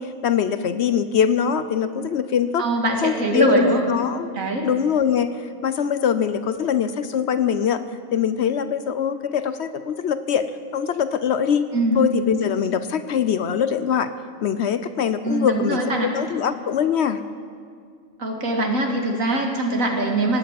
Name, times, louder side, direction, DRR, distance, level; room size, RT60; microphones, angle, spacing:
voice 1, 0.0-2.6 3.0-4.3 4.6-7.8 8.1-10.5 10.7-11.7 11.9-14.1 14.4-17.2, left 8 dB, 60° left, 12 dB, 0.8 m, -23 dB
voice 2, 2.6-3.8 4.3-4.7 11.7-12.1 15.2-16.1 18.2-20.4, right 1 dB, 80° right, 1 dB, 2.4 m, -22 dB
18.0 x 8.5 x 8.4 m, 2.1 s
omnidirectional pair, 1.4 m